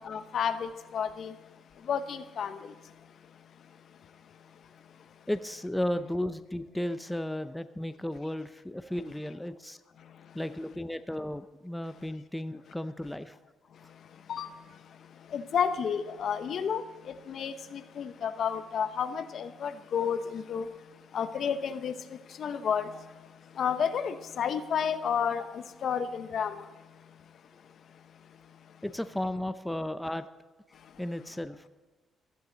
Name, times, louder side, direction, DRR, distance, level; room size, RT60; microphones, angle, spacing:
voice 1, 0.0-1.3 1.9-2.6 14.3-14.5 15.3-16.8 17.3-20.7 21.1-21.9 22.4-22.9 23.6-26.5, left 7 dB, 60° left, 0.9 m, -31 dB
voice 2, 5.3-9.8 10.3-13.3 28.8-30.3 31.0-31.7, left 1 dB, 5° left, 0.6 m, -34 dB
15.0 x 13.5 x 4.0 m
cardioid pair, 90°, 0 cm